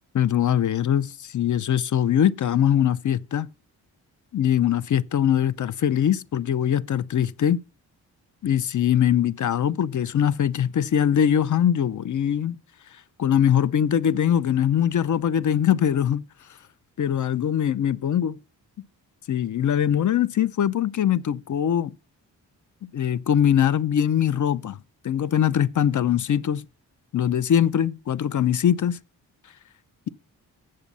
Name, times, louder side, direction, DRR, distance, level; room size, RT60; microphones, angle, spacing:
voice 1, 0.1-3.5 4.3-7.6 8.4-12.6 13.2-16.2 17.0-18.4 19.3-21.9 22.8-24.8 25.0-26.6 27.1-29.0, left 9 dB, 45° left, 0.6 m, -22 dB
7.8 x 7.0 x 5.3 m
supercardioid pair, 45°, 43 cm